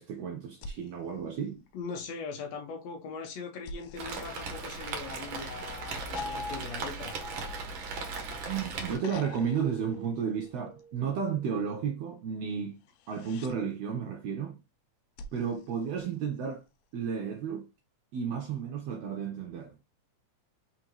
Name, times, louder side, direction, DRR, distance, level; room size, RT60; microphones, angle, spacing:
voice 1, 0.0-1.6 8.5-12.8 13.1-14.6 15.3-16.6 16.9-17.7 18.1-19.7, right 7 dB, 80° right, 1.5 m, -33 dB
sound 1, 0.5-2.1 3.6-5.3 6.1-8.4 9.0-10.8 12.8-13.6 15.2-16.6 18.2-18.3, left 3 dB, 90° left, 1.4 m, -49 dB
voice 2, 1.7-7.2, left 4 dB, 75° left, 1.7 m, -40 dB
Rain, 4.0-9.0, right 4 dB, 65° right, 1.3 m, -38 dB
Piano, 5.1-11.8, left 2 dB, 30° left, 1.4 m, -46 dB
4.5 x 3.6 x 3.0 m
omnidirectional pair, 3.5 m